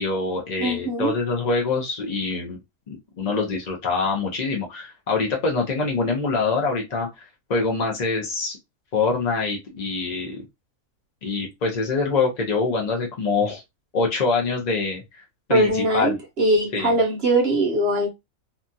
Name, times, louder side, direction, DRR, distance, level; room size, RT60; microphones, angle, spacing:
voice 1, 0.0-2.6 2.9-8.6 8.9-10.4 11.2-13.6 13.9-15.2 15.5-16.2 16.7-17.0, left 4 dB, 55° left, 0.5 m, -25 dB
voice 2, 0.6-1.1 15.5-18.1, right 1 dB, 55° right, 0.8 m, -21 dB
2.8 x 2.3 x 2.6 m
omnidirectional pair, 1.5 m